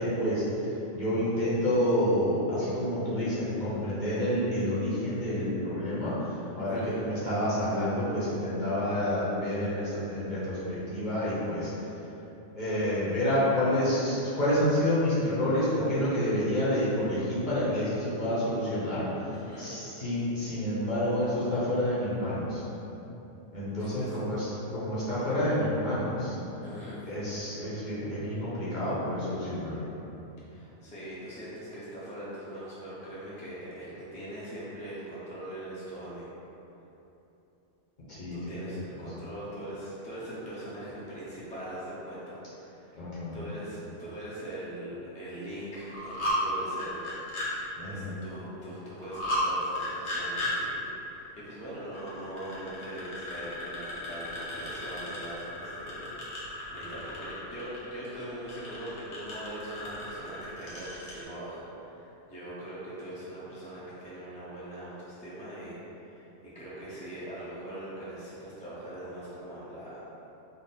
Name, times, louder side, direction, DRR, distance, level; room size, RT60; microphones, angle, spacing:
voice 1, 0.0-11.9 12.5-19.0 19.6-22.6 23.5-26.3 27.1-29.9 38.1-38.6 43.0-43.3 47.8-48.2, equal, 45° left, -10 dB, 0.9 m, -29 dB
voice 2, 19.3-19.8 23.8-24.2 26.6-27.1 30.5-36.4 38.3-43.0 43.3-47.1 47.3-70.0, right 1 dB, 10° left, -9 dB, 0.5 m, -41 dB
sound 1, 45.7-46.4 46.7-47.5 49.0-49.4 49.8-50.5 51.9-61.2, left 1 dB, 65° left, 1.1 m, -35 dB
3.9 x 2.0 x 4.0 m, 3.0 s
omnidirectional pair, 1.3 m